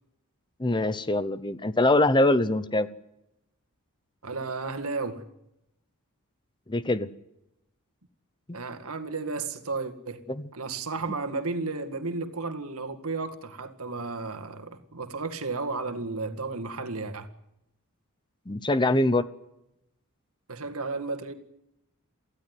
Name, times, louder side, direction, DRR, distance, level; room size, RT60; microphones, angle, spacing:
voice 1, 0.6-2.9 6.7-7.1 8.5-8.6 10.3-10.4 18.5-19.2, left 2 dB, 20° left, 0.8 m, -23 dB
voice 2, 4.2-5.2 8.5-10.2 10.5-17.3 20.5-21.3, right 3 dB, 70° right, 2.0 m, -33 dB
24.0 x 15.5 x 9.6 m
head